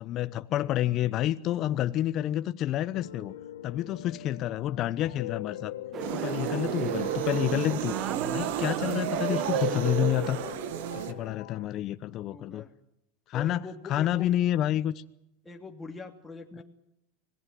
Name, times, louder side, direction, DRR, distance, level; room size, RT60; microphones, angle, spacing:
voice 1, 0.0-3.3 3.6-5.7 6.1-10.4 10.9-12.6 13.3-13.6 13.9-15.0, left 12 dB, 45° left, 0.9 m, -29 dB
Piano, 2.9-11.7, left 12 dB, 90° left, 2.3 m, -42 dB
sound 1, 5.9-11.4, right 10 dB, 40° right, 0.9 m, -36 dB
sound 2, 6.0-11.1, right 12 dB, 75° right, 1.6 m, -32 dB
voice 2, 12.3-12.7 13.3-14.4 15.4-16.6, left 4 dB, 10° left, 2.8 m, -43 dB
25.5 x 18.5 x 9.4 m
supercardioid pair, 115°, 0 cm